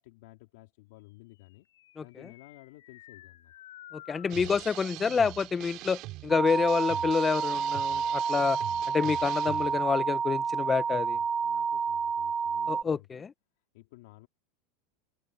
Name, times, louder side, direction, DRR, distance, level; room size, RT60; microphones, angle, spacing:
voice 1, 0.0-1.7 2.0-3.5 10.6-13.2 13.7-14.3, left 20 dB, 70° left, 4.0 m, -54 dB
sound 1, 1.4-5.0, left 14 dB, 90° left, 5.0 m, -51 dB
voice 2, 3.9-8.6 8.9-11.2 12.7-13.3, left 5 dB, 20° left, 0.9 m, -28 dB
sound 2, 4.3-9.8, right 19 dB, 50° right, 3.0 m, -43 dB
sound 3, 6.3-12.8, right 6 dB, 20° right, 0.4 m, -29 dB
supercardioid pair, 125°, 0 cm